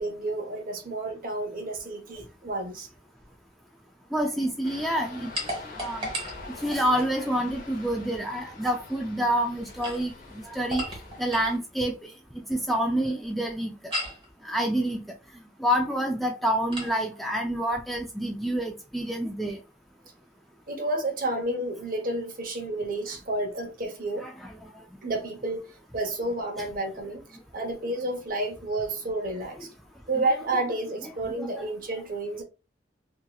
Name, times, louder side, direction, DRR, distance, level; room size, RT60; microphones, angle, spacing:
voice 1, 0.0-2.9 20.7-24.3 25.0-25.6 25.9-29.7 30.1-32.4, right 2 dB, 45° right, 0.8 m, -30 dB
voice 2, 4.1-5.3 5.8-6.1 6.6-10.1 10.5-10.8 11.2-12.1 12.5-13.7 14.4-15.0 15.6-19.6 24.2-24.5 31.2-31.6, right 1 dB, ahead, 0.3 m, -27 dB
sound 1, 4.6-11.6, left 3 dB, 45° left, 0.8 m, -45 dB
sound 2, 5.3-7.1 9.6-11.6 13.9-14.3 16.7-17.0, equal, 30° right, 1.4 m, -35 dB
2.8 x 2.8 x 2.2 m
head